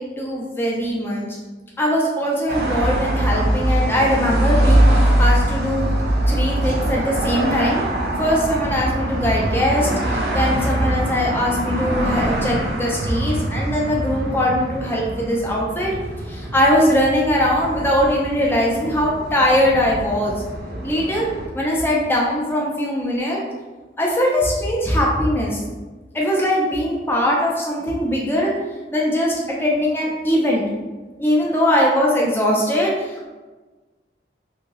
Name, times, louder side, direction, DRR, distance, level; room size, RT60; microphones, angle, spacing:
voice 1, 0.0-1.4 1.8-5.9 6.3-7.8 8.2-15.9 16.3-20.3 20.8-21.3 21.5-23.4 24.0-25.6 26.1-28.5 28.9-29.3 29.6-30.6 31.2-33.3, equal, 15° left, -3 dB, 0.5 m, -21 dB
sound 1, 2.5-21.5, right 1 dB, 65° right, 0.6 m, -22 dB
2.8 x 2.6 x 3.0 m, 1.2 s
head